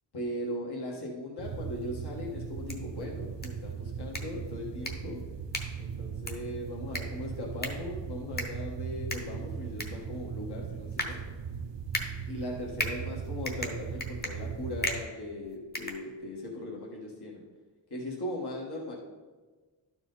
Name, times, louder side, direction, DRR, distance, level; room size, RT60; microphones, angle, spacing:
voice 1, 0.1-5.2 5.8-11.2 12.3-17.4 17.9-19.0, left 1 dB, 55° left, -2 dB, 1.5 m, -38 dB
sound 1, 1.4-15.1, right 7 dB, 65° right, 0.7 m, -39 dB
sound 2, 2.5-16.6, left 1 dB, 20° left, 1.0 m, -40 dB
12.0 x 4.7 x 3.9 m, 1.4 s
wide cardioid pair, 120°, 46 cm